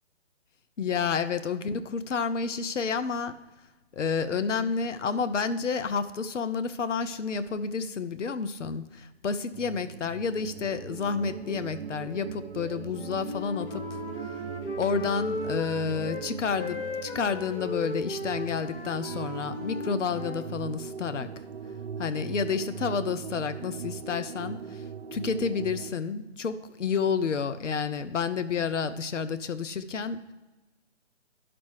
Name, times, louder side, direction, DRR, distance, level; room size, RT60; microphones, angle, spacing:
voice 1, 0.8-3.3 3.9-14.0 14.8-21.3 22.0-24.8 25.1-30.3, left 5 dB, 75° left, 12 dB, 0.8 m, -30 dB
sound 1, 9.5-25.9, right 7 dB, 55° right, 0.6 m, -40 dB
Wind instrument woodwind instrument, 12.9-16.2 16.5-20.4, left 2 dB, 50° left, 1.8 m, -36 dB
11.0 x 6.1 x 4.7 m, 1.1 s
figure-of-eight pair, 155°, 37 cm